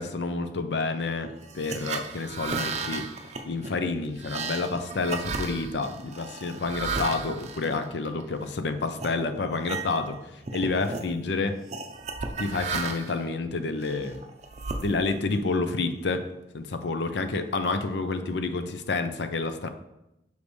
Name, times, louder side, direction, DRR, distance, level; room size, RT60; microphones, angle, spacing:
voice 1, 0.0-3.1 3.5-11.6 12.4-14.2 14.8-16.3 16.5-19.7, left 3 dB, 75° left, 9 dB, 0.5 m, -29 dB
sound 1, 1.4-8.5 9.0-9.2 9.5-10.2 10.4-11.1 11.7-13.2 13.8-15.3, right 4 dB, 40° right, 0.5 m, -34 dB
6.5 x 5.2 x 3.2 m, 0.89 s
head